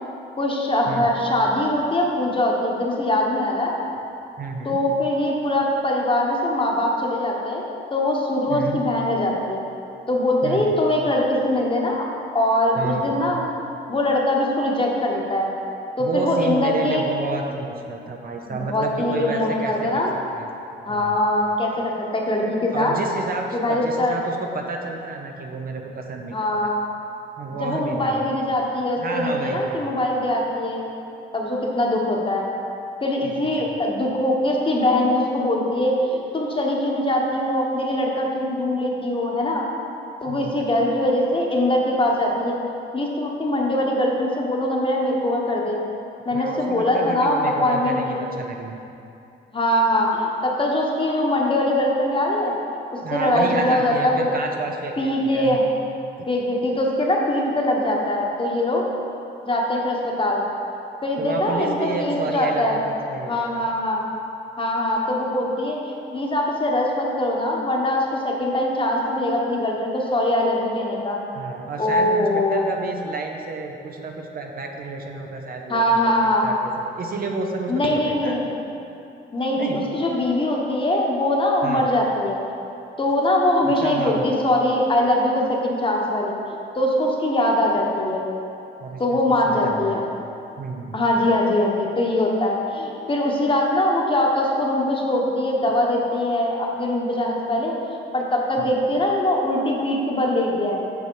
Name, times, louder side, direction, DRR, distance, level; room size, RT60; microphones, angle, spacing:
voice 1, 0.4-3.7 4.6-7.6 7.9-9.6 10.1-12.1 12.3-13.4 13.9-15.5 16.0-17.0 18.6-20.1 20.8-22.9 23.5-24.2 26.3-26.8 27.6-30.8 31.3-32.4 33.0-39.7 40.2-42.6 42.9-45.8 46.2-48.2 49.5-52.5 52.9-54.3 55.0-55.7 56.3-58.8 59.4-60.4 61.0-62.8 63.3-64.0 64.6-71.2 71.8-72.6 75.7-76.4 77.7-78.4 79.3-82.4 83.0-86.4 86.7-88.3 89.0-90.0 90.9-97.7 98.1-100.8, left 1 dB, 25° left, -1 dB, 1.3 m, -22 dB
voice 2, 4.4-4.8 8.5-8.8 10.4-10.7 12.8-13.4 16.0-20.0 20.3-20.5 20.9-21.2 22.7-26.4 26.6-26.7 27.4-28.3 29.0-29.9 33.2-33.8 40.3-40.6 46.3-48.8 53.0-55.6 61.2-63.7 71.3-76.5 76.9-78.4 79.6-79.9 81.6-81.9 83.6-84.3 88.8-90.0 90.6-91.0 98.6-98.7, right 3 dB, 45° right, 2 dB, 0.8 m, -30 dB
8.0 x 5.5 x 4.6 m, 2.7 s
cardioid pair, 90°, 20 cm